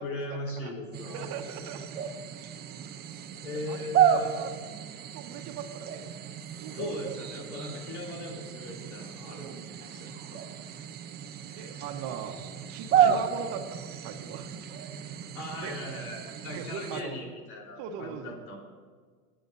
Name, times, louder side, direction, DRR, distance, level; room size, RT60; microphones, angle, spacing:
voice 1, 0.0-1.3 3.4-4.3 6.7-9.5 9.9-10.4 11.5-11.8 12.9-13.2 15.3-18.6, left 2 dB, 75° left, -1 dB, 4.0 m, -39 dB
sound 1, 0.9-17.0, right 8 dB, 20° right, 0.6 m, -32 dB
voice 2, 1.1-1.8 3.7-3.9 4.3-4.5 5.1-6.1 6.6-6.9 9.3-9.8 11.6-12.4 12.7-14.6 15.6-15.8 16.4-17.2 17.8-18.4, right 7 dB, 40° right, 2 dB, 1.3 m, -40 dB
22.0 x 9.0 x 2.7 m, 1.5 s
hypercardioid pair, 120°, 44 cm